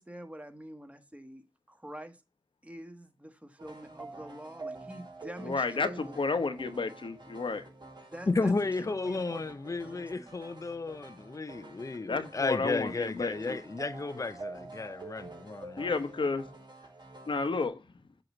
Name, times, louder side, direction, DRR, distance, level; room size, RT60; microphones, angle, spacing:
voice 1, 0.0-2.2 2.6-6.6 8.1-8.5 8.8-9.5 9.8-10.3, right 1 dB, 15° right, 1.3 m, -46 dB
sound 1, 3.6-17.7, right 3 dB, 60° right, 2.2 m, -48 dB
voice 2, 5.4-7.7 12.1-13.6 15.8-16.4 17.3-17.8, left 4 dB, 75° left, 1.0 m, -31 dB
voice 3, 8.3-15.9, left 3 dB, 40° left, 0.5 m, -33 dB
7.7 x 2.9 x 6.0 m
cardioid pair, 45°, 9 cm